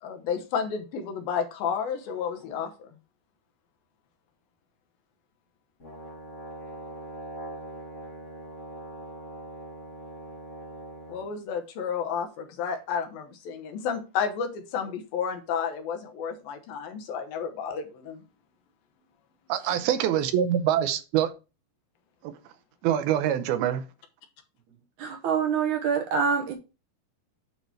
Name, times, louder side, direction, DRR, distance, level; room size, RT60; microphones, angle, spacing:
voice 1, 0.0-2.7 11.1-18.2, left 7 dB, 75° left, 2.7 m, -31 dB
Brass instrument, 5.8-11.3, right 2 dB, 40° left, 1.0 m, -41 dB
voice 2, 19.5-21.3 22.2-22.3 22.8-23.8, right 10 dB, 80° right, 2.6 m, -25 dB
voice 3, 25.0-26.5, right 6 dB, 65° right, 2.2 m, -25 dB
9.2 x 3.2 x 5.7 m
omnidirectional pair, 4.4 m